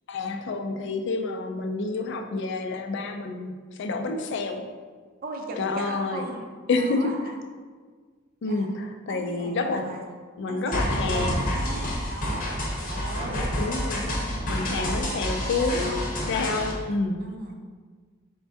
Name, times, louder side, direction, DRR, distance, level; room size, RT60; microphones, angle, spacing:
voice 1, 0.1-3.5 3.8-4.6 5.6-6.2 6.7-7.1 8.4-9.9 10.4-11.5 13.6-14.2 14.5-17.2, left 3 dB, 60° left, 5 dB, 0.4 m, -28 dB
voice 2, 5.2-6.4 6.7-7.4 8.5-8.7 9.1-10.0 10.5-13.5 14.6-16.1 16.5-16.6 17.2-17.6, right 2 dB, 45° right, 2 dB, 0.5 m, -37 dB
sound 1, 10.7-16.7, left 1 dB, 45° left, 0.8 m, -29 dB
4.3 x 3.4 x 2.7 m, 1.5 s
head